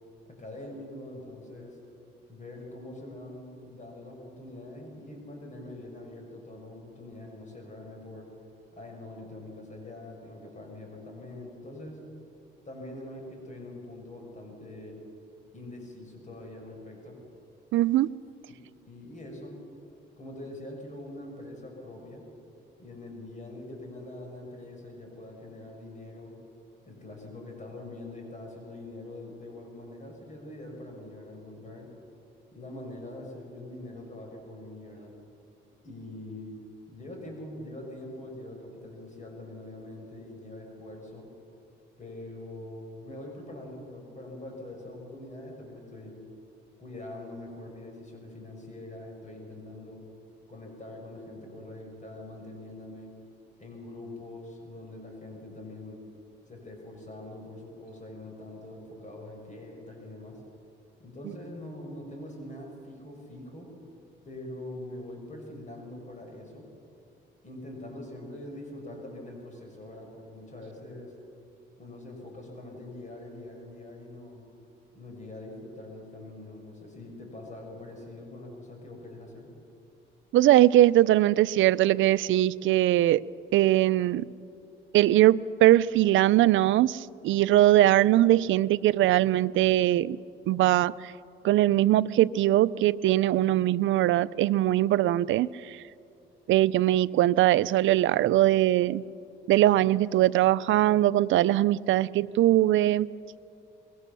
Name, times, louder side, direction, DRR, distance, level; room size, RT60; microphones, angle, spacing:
voice 1, 0.3-1.8 2.3-8.3 8.7-12.0 12.6-15.0 15.5-17.2 18.5-18.6 18.9-19.6 20.2-22.2 22.8-26.3 26.9-31.9 32.5-35.1 35.8-36.6 36.9-41.3 42.0-46.2 46.8-50.0 50.5-53.1 53.6-56.0 56.5-60.4 61.0-63.7 64.2-66.6 67.4-71.1 71.8-74.5 74.9-79.5, left 1 dB, 40° left, 6.4 m, -43 dB
voice 2, 17.7-18.1 80.3-83.2 83.5-84.3 84.9-90.2 90.5-91.1 91.4-95.8 96.5-99.0 99.5-103.1, right 14 dB, 80° right, 0.5 m, -21 dB
25.5 x 21.5 x 6.9 m
cardioid pair, 90°, 20 cm